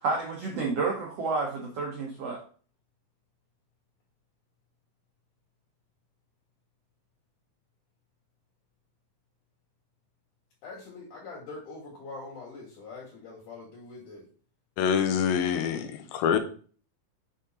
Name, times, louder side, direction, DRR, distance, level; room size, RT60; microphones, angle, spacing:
voice 1, 0.0-2.4, right 4 dB, 80° right, 1.3 m, -30 dB
voice 2, 10.6-14.2, left 3 dB, 60° left, 3.0 m, -43 dB
voice 3, 14.8-16.4, left 7 dB, 85° left, 2.5 m, -25 dB
7.6 x 3.7 x 4.1 m
omnidirectional pair, 4.3 m